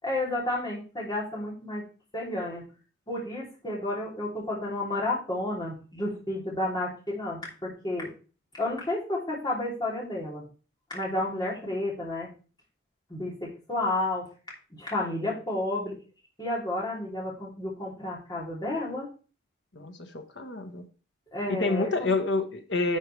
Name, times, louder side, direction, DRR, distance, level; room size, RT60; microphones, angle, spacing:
voice 1, 0.0-1.8 2.1-2.6 3.1-8.1 8.5-10.4 10.9-12.3 13.1-14.3 14.8-16.0 16.4-19.1 21.3-22.1, left 1 dB, 20° left, -5 dB, 3.3 m, -31 dB
voice 2, 19.7-20.8 21.5-23.0, left 3 dB, 70° left, 7 dB, 1.3 m, -28 dB
11.5 x 6.6 x 3.4 m, 0.36 s
head